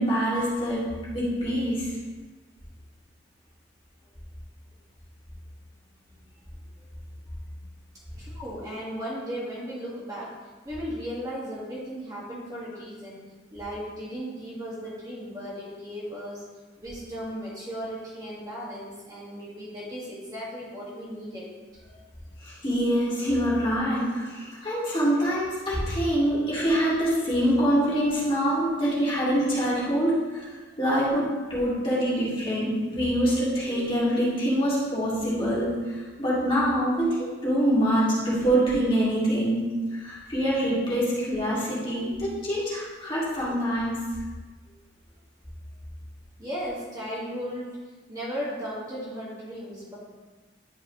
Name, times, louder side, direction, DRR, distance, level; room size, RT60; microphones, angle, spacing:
voice 1, 0.0-1.9 22.4-30.5 30.8-44.2, equal, 25° left, -8 dB, 2.2 m, -25 dB
voice 2, 8.2-16.4 16.8-21.5 46.4-47.8 48.1-50.0, equal, 20° right, -8 dB, 1.6 m, -36 dB
10.5 x 4.5 x 3.1 m, 1.3 s
head